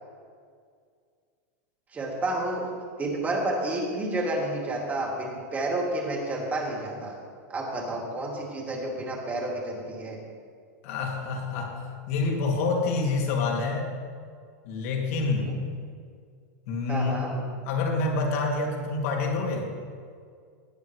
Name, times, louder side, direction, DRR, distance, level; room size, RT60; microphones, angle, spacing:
voice 1, 1.9-2.7 3.0-7.1 7.5-10.2 15.4-15.5 16.9-17.3, right 2 dB, 20° right, -2 dB, 2.5 m, -30 dB
voice 2, 10.8-13.9 14.6-15.5 16.7-19.7, left 3 dB, 60° left, 0 dB, 2.5 m, -27 dB
18.0 x 9.0 x 3.2 m, 2.1 s
supercardioid pair, 135°, 9 cm